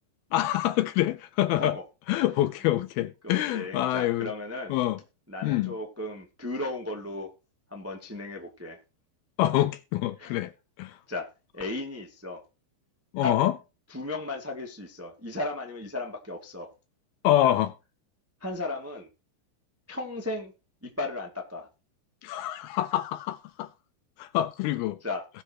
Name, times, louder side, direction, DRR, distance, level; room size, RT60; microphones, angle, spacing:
voice 1, 0.3-1.8 2.1-4.3 4.7-5.0 5.4-5.8 9.4-10.5 10.8-11.0 13.1-13.5 17.2-17.7 22.2-23.7 24.2-25.0, left 14 dB, 80° left, 2.3 m, -26 dB
voice 2, 3.2-4.7 5.3-7.3 7.7-8.8 10.2-10.3 11.1-12.4 13.2-13.4 13.9-16.7 17.4-17.5 18.4-19.1 19.9-20.5 20.8-21.7 25.0-25.3, left 2 dB, 10° right, 0.6 m, -35 dB
20.0 x 6.9 x 3.0 m
omnidirectional pair, 4.8 m